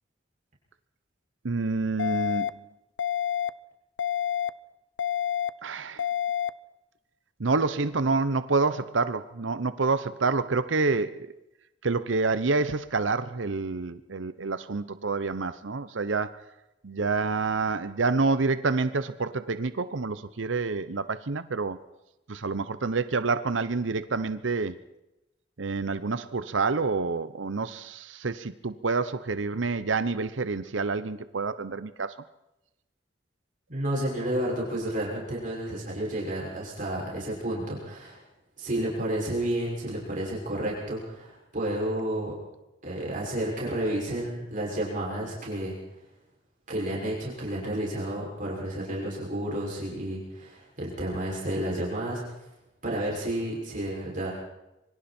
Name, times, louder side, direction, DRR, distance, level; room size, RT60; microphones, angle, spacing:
voice 1, 1.4-2.5 5.6-6.0 7.4-11.3 11.8-16.4 16.8-21.8 22.3-24.8 25.6-32.2, right 3 dB, 90° right, 13 dB, 0.9 m, -28 dB
sound 1, 2.0-2.5 3.0-3.5 4.0-4.5 5.0-5.5 6.0-6.5, left 9 dB, 90° left, 0.7 m, -28 dB
voice 2, 33.7-38.2 38.6-42.3 42.8-45.8 46.7-52.2 52.8-54.3, right 1 dB, 45° right, -3 dB, 6.2 m, -31 dB
26.0 x 24.0 x 4.4 m, 0.94 s
head